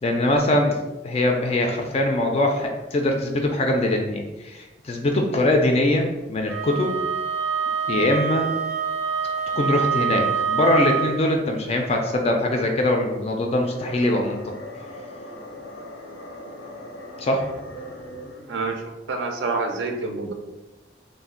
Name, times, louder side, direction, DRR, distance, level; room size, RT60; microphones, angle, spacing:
voice 1, 0.0-7.0 7.9-8.5 9.6-14.5 17.2-17.5, left 1 dB, 35° left, 2 dB, 0.3 m, -22 dB
Wind instrument woodwind instrument, 6.5-11.2, right 6 dB, 10° right, 0.6 m, -25 dB
sound 1, 13.4-18.7, equal, 85° left, 0.6 m, -39 dB
voice 2, 18.5-18.8 19.1-20.3, right 3 dB, 75° right, 3 dB, 0.4 m, -27 dB
2.5 x 2.0 x 3.7 m, 1.1 s
head